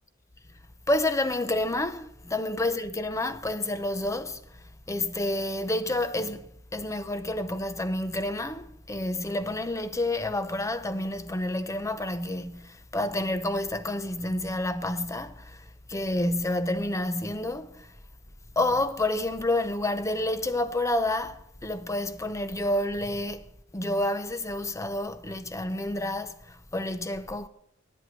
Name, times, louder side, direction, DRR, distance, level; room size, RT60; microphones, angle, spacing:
voice 1, 0.9-4.4 4.9-17.9 18.6-23.5 23.7-27.5, left 1 dB, 15° left, 0.6 m, -29 dB
9.6 x 8.0 x 9.0 m
head